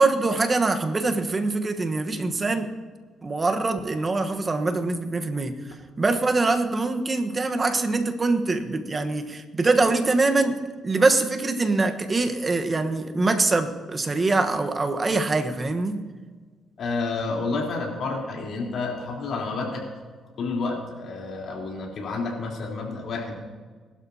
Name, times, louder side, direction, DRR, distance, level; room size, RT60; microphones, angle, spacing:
voice 1, 0.0-2.7 3.2-16.1, right 3 dB, 30° right, 7 dB, 1.2 m, -24 dB
voice 2, 16.8-19.9 20.4-23.4, left 3 dB, 65° left, -2 dB, 3.8 m, -30 dB
21.0 x 12.0 x 2.9 m, 1.5 s
cardioid pair, 90°, 0 cm